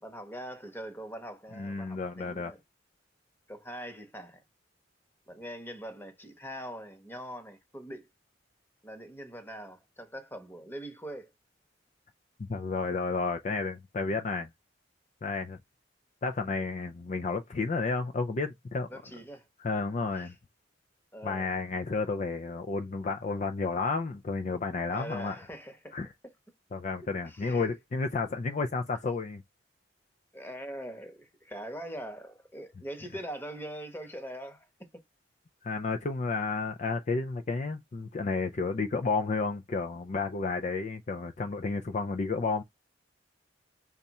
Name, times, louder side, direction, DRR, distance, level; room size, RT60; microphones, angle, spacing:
voice 1, 0.0-2.6 3.5-4.4 5.3-8.1 8.8-11.3 18.9-19.5 20.1-20.3 21.1-21.5 24.9-26.0 27.2-27.7 28.6-28.7 30.3-34.7, equal, 10° left, 1.1 m, -42 dB
voice 2, 1.5-2.5 12.5-14.5 15.2-15.6 16.2-19.0 19.6-20.3 21.2-25.3 25.9-26.1 26.7-29.4 35.6-42.6, left 4 dB, 40° left, 0.4 m, -31 dB
5.4 x 2.3 x 4.1 m
head